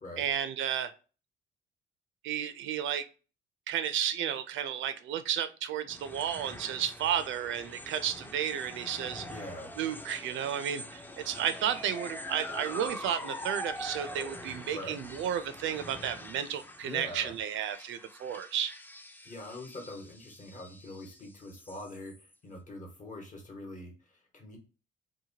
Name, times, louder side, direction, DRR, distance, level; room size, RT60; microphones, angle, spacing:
voice 1, 0.2-0.9 2.2-3.1 3.7-9.3 9.8-18.7, right 9 dB, 75° right, 11 dB, 0.4 m, -32 dB
sound 1, 5.9-22.3, left 1 dB, 10° left, 0.4 m, -44 dB
voice 2, 9.3-9.7 14.7-15.0 16.8-17.3 19.2-24.6, left 1 dB, 40° left, 2 dB, 1.1 m, -44 dB
2.8 x 2.2 x 2.7 m, 0.35 s
cardioid pair, 90°, 20 cm